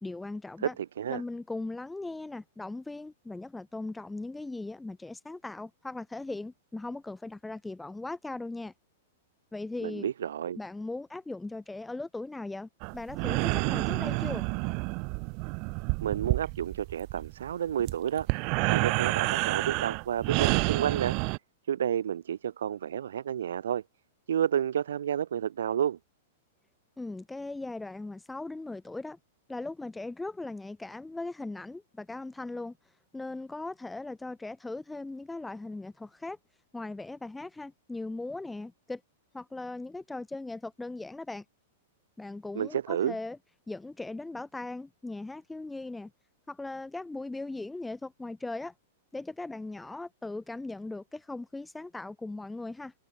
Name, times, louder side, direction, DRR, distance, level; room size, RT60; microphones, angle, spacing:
voice 1, 0.0-0.7 1.1-8.7 9.5-10.1 10.6-14.5 27.0-29.2 29.5-32.8 33.1-36.4 36.7-39.0 39.3-41.4 42.2-43.4 43.7-46.1 46.5-48.7 49.1-52.9, left 2 dB, 5° left, 3.0 m, -39 dB
voice 2, 0.6-1.2 9.8-10.6 16.0-18.3 18.7-21.2 21.7-23.8 24.3-26.0 42.5-43.2, right 9 dB, 90° right, 1.0 m, -30 dB
sound 1, 12.8-21.4, right 34 dB, 35° right, 1.0 m, -29 dB
supercardioid pair, 165°, 0 cm